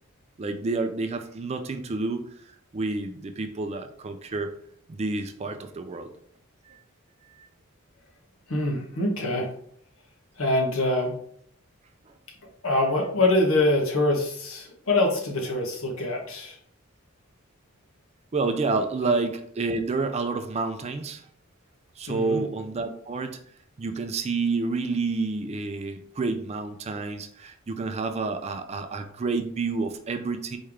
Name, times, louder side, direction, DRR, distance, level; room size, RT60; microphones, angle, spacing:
voice 1, 0.4-2.3 2.7-4.6 4.9-6.1 6.7-6.8 7.3-7.5 12.1-12.2 18.3-21.3 22.0-23.4 23.8-30.6, right 3 dB, 30° right, 8 dB, 0.4 m, -29 dB
voice 2, 8.5-9.5 10.4-11.1 12.6-16.6 19.0-19.2 22.1-22.5, left 2 dB, 70° left, 1 dB, 1.2 m, -24 dB
4.3 x 3.3 x 3.5 m, 0.64 s
head